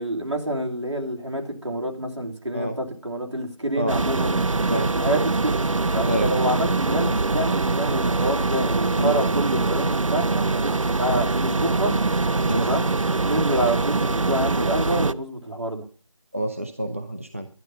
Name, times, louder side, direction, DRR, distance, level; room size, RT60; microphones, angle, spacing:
voice 1, 0.0-4.5 5.0-10.7 11.0-11.9 12.6-12.8 13.2-15.8, right 1 dB, 65° right, 1 dB, 3.1 m, -27 dB
sound 1, 3.9-15.1, right 3 dB, 80° right, 0.6 m, -23 dB
voice 2, 16.3-17.5, equal, 25° right, 7 dB, 0.5 m, -27 dB
11.0 x 10.5 x 5.5 m, 0.41 s
figure-of-eight pair, 170°, 16 cm